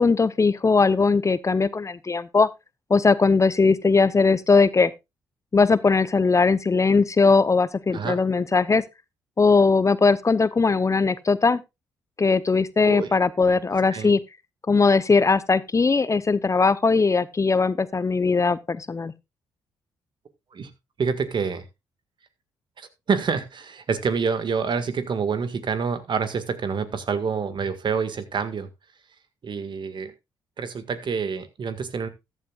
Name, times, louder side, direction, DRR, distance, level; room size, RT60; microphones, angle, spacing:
voice 1, 0.0-2.5 2.9-4.9 5.5-8.8 9.4-11.6 12.2-14.2 14.7-19.1, left 4 dB, 30° left, 0.8 m, -19 dB
voice 2, 12.8-13.2 13.9-14.1 20.5-20.7 21.0-21.6 22.8-28.7 29.4-30.1 30.6-32.1, right 5 dB, 50° right, 1.8 m, -27 dB
14.0 x 11.0 x 2.4 m
hypercardioid pair, 45°, 10 cm